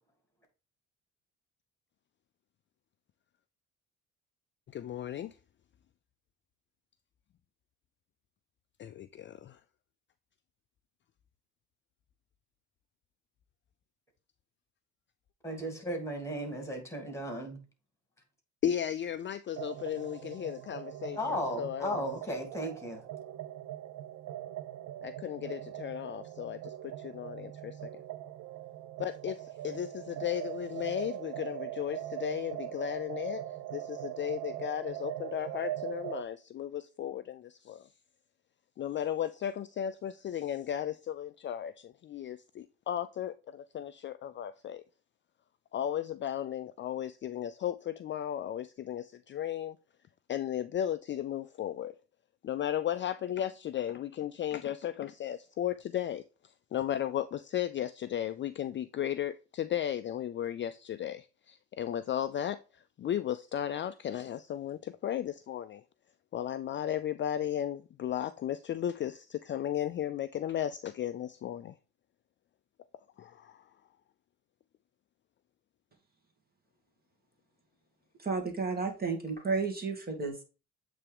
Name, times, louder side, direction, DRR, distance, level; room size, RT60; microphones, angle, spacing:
voice 1, 4.7-5.3 8.8-9.6 18.6-21.2 21.6-22.0 25.0-27.9 29.0-33.4 33.7-37.9 38.8-44.8 45.7-49.8 50.3-51.9 52.4-56.2 56.7-62.6 63.0-65.8 66.3-71.7 73.2-73.6, left 10 dB, 40° left, 0.4 m, -35 dB
voice 2, 15.4-17.6 21.2-23.0, equal, 10° left, 2.5 m, -35 dB
sound 1, 19.6-36.2, right 12 dB, 60° right, 0.5 m, -41 dB
voice 3, 78.2-80.4, right 4 dB, 30° right, 2.1 m, -32 dB
8.1 x 3.4 x 3.4 m
cardioid pair, 95°, 32 cm